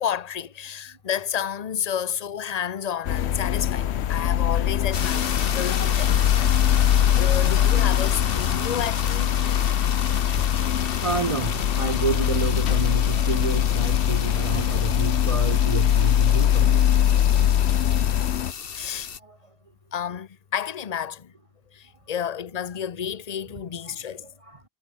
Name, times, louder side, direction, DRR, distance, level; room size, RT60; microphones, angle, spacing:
voice 1, 0.0-6.5 7.2-9.4 18.7-19.1 19.9-21.3 21.7-24.3, left 8 dB, 40° left, 0.8 m, -31 dB
sound 1, 3.1-18.5, left 10 dB, 80° left, 1.0 m, -22 dB
sound 2, 4.9-19.2, left 7 dB, 60° left, 1.3 m, -33 dB
voice 2, 5.5-6.9 7.2-7.4 10.7-16.8 17.3-17.4 19.2-19.4 23.9-24.6, right 5 dB, 35° right, 0.6 m, -31 dB
omnidirectional pair, 1.1 m